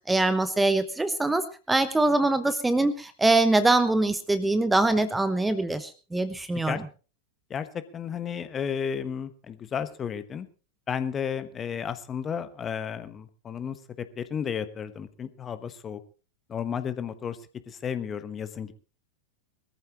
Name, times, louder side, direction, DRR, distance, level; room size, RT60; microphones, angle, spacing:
voice 1, 0.1-6.8, right 2 dB, 10° right, 13 dB, 1.0 m, -23 dB
voice 2, 7.5-10.5 10.9-16.0 16.5-17.4 17.7-18.7, left 7 dB, 25° left, 12 dB, 1.2 m, -33 dB
22.0 x 14.0 x 3.0 m, 0.36 s
figure-of-eight pair, 90°, 0 cm